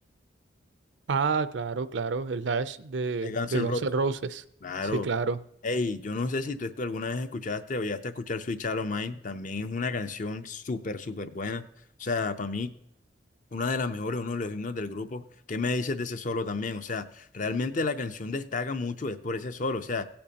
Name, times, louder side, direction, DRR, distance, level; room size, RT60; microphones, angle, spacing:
voice 1, 1.1-4.4 4.9-5.4, right 4 dB, 70° right, 14 dB, 0.5 m, -29 dB
voice 2, 3.2-3.8 4.6-5.1 5.6-11.6 12.0-12.7 13.5-20.0, left 3 dB, 40° left, 10 dB, 0.5 m, -31 dB
16.5 x 8.7 x 2.9 m, 0.73 s
head